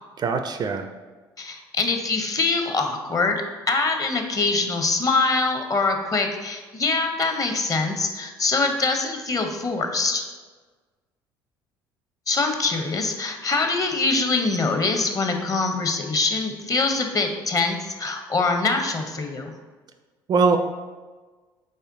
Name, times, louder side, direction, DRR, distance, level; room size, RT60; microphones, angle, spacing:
voice 1, 0.2-0.9 20.3-20.6, right 4 dB, 35° right, 7 dB, 0.4 m, -21 dB
voice 2, 1.4-3.4 3.7-10.3 12.3-19.5, left 3 dB, 30° left, 5 dB, 0.7 m, -24 dB
4.3 x 3.3 x 3.7 m, 1.4 s
figure-of-eight pair, 55°, 12 cm